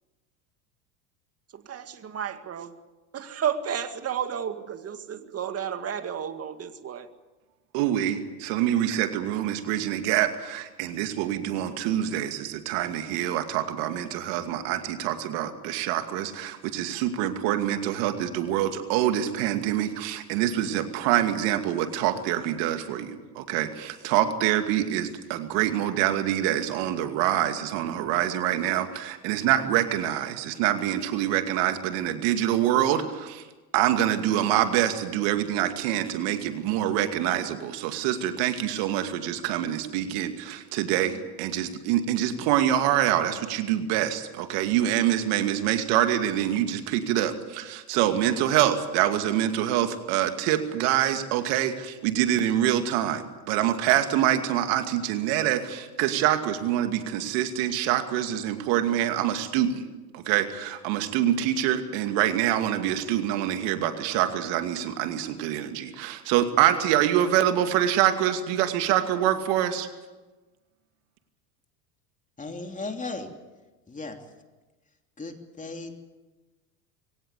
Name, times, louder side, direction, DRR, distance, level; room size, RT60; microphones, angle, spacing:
voice 1, 1.5-2.7 3.1-7.1, right 8 dB, 30° right, 9 dB, 2.1 m, -32 dB
voice 2, 7.7-33.4 33.7-59.9 60.1-69.9, right 11 dB, 60° right, 7 dB, 2.5 m, -25 dB
voice 3, 72.4-73.3 73.9-74.2 75.2-76.0, left 3 dB, 15° left, 4 dB, 3.1 m, -36 dB
22.5 x 18.0 x 8.4 m, 1.2 s
hypercardioid pair, 95°, 46 cm